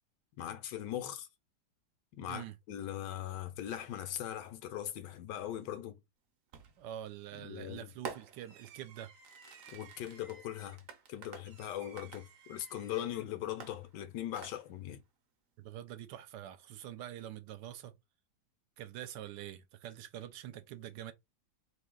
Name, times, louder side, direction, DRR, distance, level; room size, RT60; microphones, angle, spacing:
voice 1, 0.4-1.3 2.2-6.0 7.3-7.9 9.7-15.0, left 11 dB, 75° left, 1.2 m, -40 dB
Fireworks, 6.5-6.9 8.1-13.1 13.6-14.9, right 6 dB, 60° right, 1.0 m, -50 dB
voice 2, 6.8-9.1 15.6-17.9 18.8-21.1, right 11 dB, 80° right, 1.2 m, -45 dB
3.1 x 2.7 x 3.7 m
omnidirectional pair, 1.9 m